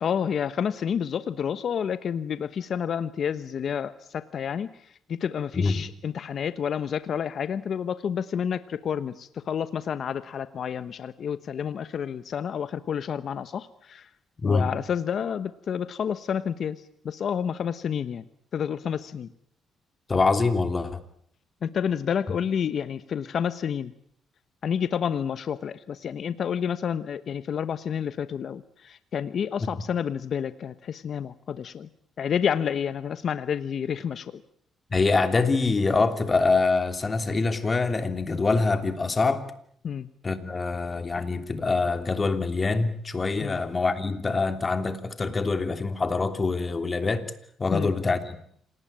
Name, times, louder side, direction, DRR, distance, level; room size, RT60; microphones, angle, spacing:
voice 1, 0.0-4.7 5.1-14.1 14.4-18.2 18.5-19.3 21.6-23.9 24.6-31.9 32.2-34.3 39.8-40.1 43.4-43.6 47.7-47.9, left 8 dB, 60° left, 13 dB, 1.1 m, -29 dB
voice 2, 14.4-14.7 20.1-21.0 29.6-29.8 34.9-39.4 40.2-47.3 47.6-48.4, left 3 dB, 30° left, 9 dB, 3.0 m, -25 dB
27.5 x 19.0 x 8.8 m, 0.68 s
cardioid pair, 90°, 0 cm